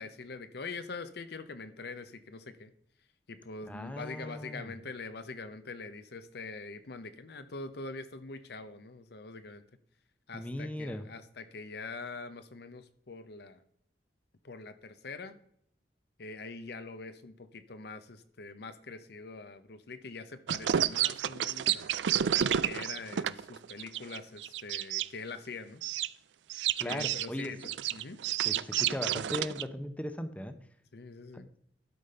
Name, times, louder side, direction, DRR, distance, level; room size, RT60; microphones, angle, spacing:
voice 1, 0.0-2.7 3.3-9.6 10.3-13.6 14.4-15.4 16.2-21.9 22.3-25.8 26.8-28.2 30.9-31.5, left 3 dB, 65° left, 11 dB, 0.8 m, -44 dB
voice 2, 3.7-4.7 10.3-11.1 26.8-27.5 28.4-30.5 31.3-31.4, left 1 dB, 10° left, 9 dB, 0.7 m, -38 dB
sound 1, 20.5-25.1 25.8-26.1 26.5-29.6, right 10 dB, 90° right, 0.4 m, -30 dB
12.0 x 5.1 x 5.6 m, 0.69 s
head